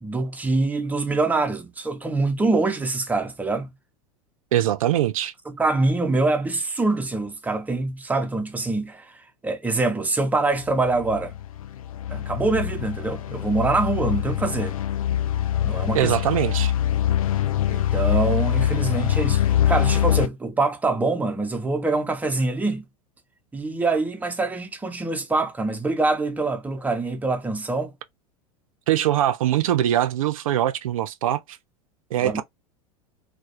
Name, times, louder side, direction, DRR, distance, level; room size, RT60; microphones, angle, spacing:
voice 1, 0.0-3.7 5.5-11.3 12.1-14.8 15.6-16.2 17.7-22.8 23.5-27.9 32.2-32.4, right 3 dB, 10° right, 0.5 m, -24 dB
voice 2, 4.5-5.3 15.9-16.7 28.9-31.6 32.1-32.4, right 12 dB, 70° right, 0.4 m, -22 dB
sound 1, 10.6-20.3, left 11 dB, 70° left, 0.4 m, -24 dB
2.2 x 2.1 x 2.8 m
figure-of-eight pair, 85°, 18 cm